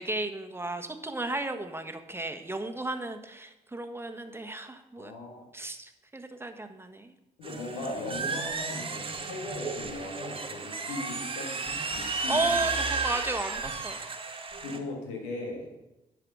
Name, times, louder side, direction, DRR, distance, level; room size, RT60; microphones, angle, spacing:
voice 1, 0.0-5.1 5.5-7.1 12.3-14.0, right 2 dB, 15° right, 7 dB, 1.2 m, -34 dB
voice 2, 4.9-5.4 7.4-12.5 14.6-15.7, left 2 dB, 90° left, 0 dB, 1.8 m, -38 dB
sound 1, 7.4-14.8, right 4 dB, 35° right, 1.5 m, -33 dB
10.5 x 5.0 x 6.2 m, 0.96 s
supercardioid pair, 55°, 16 cm